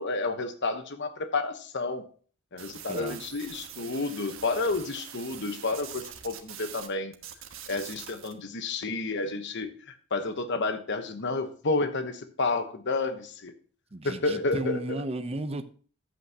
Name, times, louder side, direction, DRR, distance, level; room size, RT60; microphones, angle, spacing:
voice 1, 0.0-2.0 2.5-7.1 7.7-13.5 14.0-15.0, left 3 dB, 55° left, 1.0 m, -30 dB
sound 1, 2.6-6.9 7.1-8.3, right 9 dB, 65° right, 1.3 m, -44 dB
voice 2, 2.9-3.2 13.9-15.6, right 2 dB, 30° right, 0.7 m, -34 dB
11.5 x 8.3 x 2.9 m
head